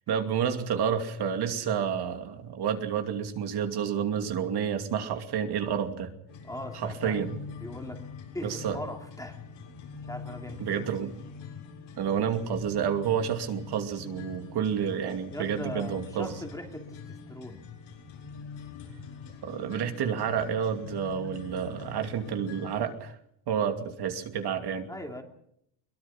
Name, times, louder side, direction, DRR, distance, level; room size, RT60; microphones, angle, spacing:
voice 1, 0.1-6.1 6.8-7.3 8.4-8.8 10.6-11.1 12.0-16.3 19.4-23.2 23.5-24.9, right 8 dB, 55° right, 6 dB, 2.6 m, -29 dB
sound 1, 6.3-22.9, left 5 dB, 75° left, 7.1 m, -44 dB
voice 2, 6.4-7.2 7.6-8.1 8.3-9.4 10.0-10.9 15.3-17.6 24.9-25.2, left 1 dB, 5° left, 3 dB, 2.9 m, -40 dB
22.5 x 22.5 x 5.9 m, 0.71 s
cardioid pair, 160°, 46 cm